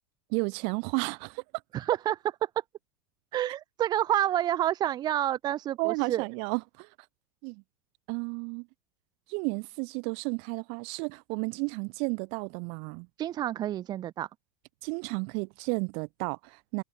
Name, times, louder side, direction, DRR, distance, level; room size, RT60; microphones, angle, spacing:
voice 1, 0.3-1.4 5.8-6.9 7.4-7.6 8.1-8.7 9.3-13.1 14.8-16.8, right 37 dB, 50° right, 7.1 m, -32 dB
voice 2, 1.7-2.2 2.4-2.5 3.3-6.2 13.2-14.3, right 12 dB, 35° right, 1.8 m, -28 dB
figure-of-eight pair, 85°, 12 cm